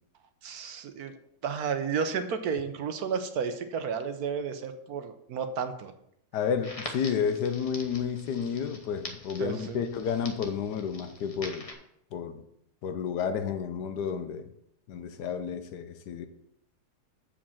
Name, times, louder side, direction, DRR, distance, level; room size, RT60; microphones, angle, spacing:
voice 1, 0.4-1.1 1.4-5.9 9.4-9.8, right 6 dB, 65° right, 1.2 m, -32 dB
voice 2, 6.3-11.7 12.1-12.4 12.8-14.5 14.9-16.3, left 7 dB, 75° left, 1.3 m, -31 dB
Crackle, 6.6-11.7, left 2 dB, 25° left, 0.9 m, -44 dB
7.2 x 5.1 x 7.0 m
omnidirectional pair, 1.8 m